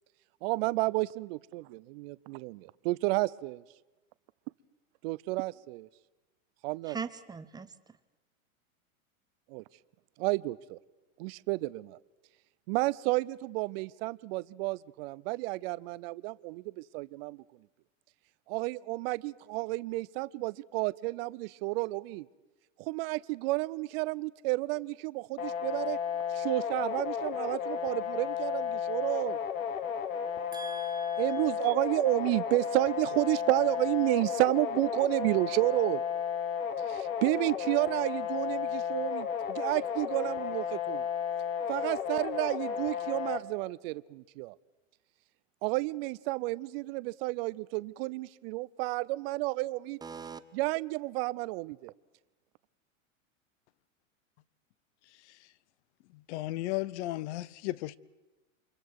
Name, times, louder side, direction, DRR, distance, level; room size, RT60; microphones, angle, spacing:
voice 1, 0.4-3.6 5.0-5.9 6.6-7.0 9.5-9.6 10.2-10.8 11.2-12.0 12.7-17.4 18.5-22.3 22.8-26.0 26.3-29.4 31.2-36.0 36.9-41.1 41.7-44.5 45.6-50.0 50.5-51.9, right 21 dB, 45° right, 0.6 m, -31 dB
voice 2, 6.9-8.0 30.5-31.5 50.0-50.4, right 5 dB, 10° right, 0.8 m, -42 dB
sound 1, 25.4-43.4, left 7 dB, 75° left, 2.0 m, -33 dB
voice 3, 56.1-58.0, left 17 dB, 55° left, 0.8 m, -34 dB
29.0 x 24.5 x 4.7 m
hypercardioid pair, 130°, 41 cm